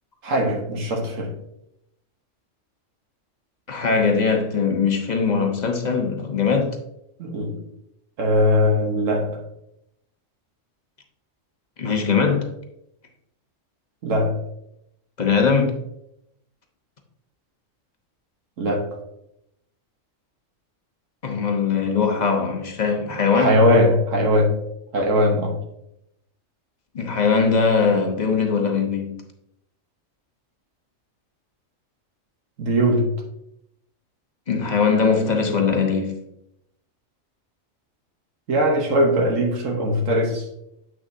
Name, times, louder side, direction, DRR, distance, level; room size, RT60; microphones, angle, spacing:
voice 1, 0.2-1.3 7.2-7.6 8.2-9.4 14.0-14.4 18.6-19.0 23.3-24.6 24.9-25.6 32.6-33.2 38.5-40.5, equal, 75° right, 1.5 m, -20 dB
voice 2, 3.7-6.8 11.8-12.5 15.2-15.8 21.2-23.6 26.9-29.2 34.5-36.2, left 5 dB, 35° left, 1.0 m, -21 dB
8.1 x 6.3 x 2.7 m
omnidirectional pair, 1.4 m